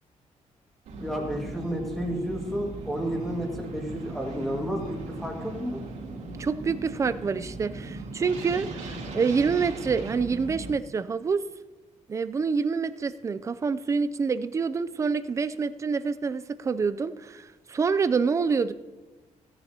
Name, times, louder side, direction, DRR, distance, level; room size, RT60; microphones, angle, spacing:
sound 1, 0.9-10.7, right 2 dB, 85° right, 3.1 m, -38 dB
voice 1, 1.0-5.8, equal, ahead, 0 dB, 1.8 m, -31 dB
voice 2, 6.4-11.4 12.1-18.7, right 5 dB, 25° right, 12 dB, 0.4 m, -27 dB
17.0 x 10.0 x 2.8 m, 1.2 s
wide cardioid pair, 175°, 13 cm